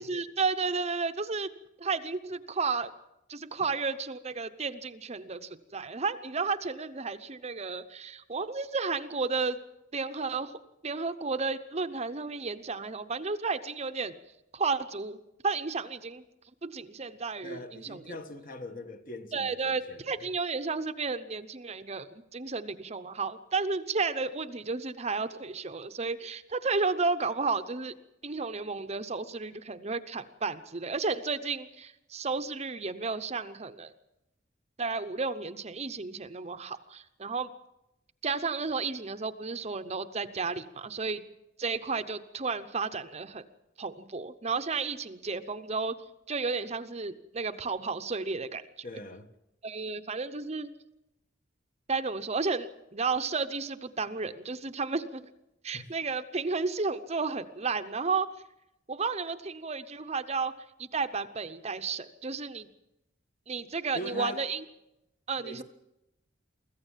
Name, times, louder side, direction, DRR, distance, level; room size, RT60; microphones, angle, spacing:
voice 1, 0.0-1.5 1.8-2.9 3.3-9.6 9.9-10.5 10.8-14.1 14.5-15.2 15.4-16.2 16.6-18.2 19.3-22.1 22.3-27.9 28.2-33.9 34.8-37.5 38.2-41.2 41.6-43.4 43.8-46.0 46.3-48.7 49.6-50.7 51.9-55.2 55.6-58.3 58.9-60.5 60.8-62.7 63.5-64.6 65.3-65.6, right 4 dB, 35° right, 0.8 m, -32 dB
voice 2, 17.4-20.3 48.8-49.3 55.7-55.9 63.9-64.4 65.4-65.6, left 1 dB, 45° left, 1.5 m, -42 dB
24.5 x 15.0 x 7.4 m
head